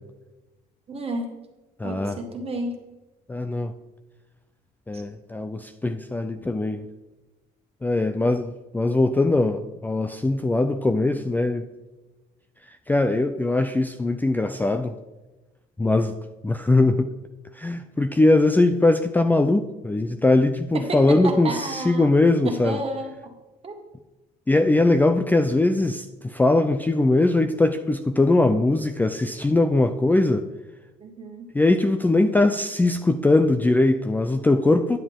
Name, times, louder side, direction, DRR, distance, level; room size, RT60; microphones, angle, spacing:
voice 1, 0.9-1.3 1.8-2.8 4.9-5.0 20.7-22.1 22.4-23.3 23.6-23.8 31.0-31.4, right 2 dB, 35° right, 4 dB, 1.6 m, -31 dB
voice 2, 1.8-2.2 3.3-3.7 4.9-6.9 7.8-11.7 12.9-14.9 15.8-16.1 16.4-17.1 17.6-22.8 24.5-30.5 31.5-35.0, left 2 dB, 10° left, 7 dB, 0.4 m, -21 dB
10.0 x 7.5 x 3.6 m, 1.1 s
cardioid pair, 110°, 17 cm